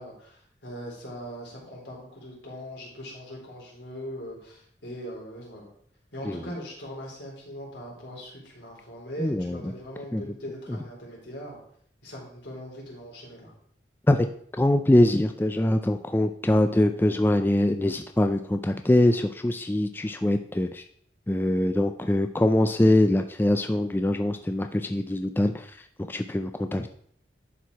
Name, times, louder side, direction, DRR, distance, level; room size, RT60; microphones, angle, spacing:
voice 1, 0.0-5.7 6.1-11.6 12.0-13.5, equal, 80° left, -3 dB, 3.6 m, -40 dB
voice 2, 9.2-9.6 10.1-10.2 14.1-14.3 14.6-20.8 21.3-25.7 26.1-26.9, left 1 dB, 10° left, 7 dB, 0.3 m, -23 dB
11.0 x 4.7 x 4.6 m, 0.63 s
head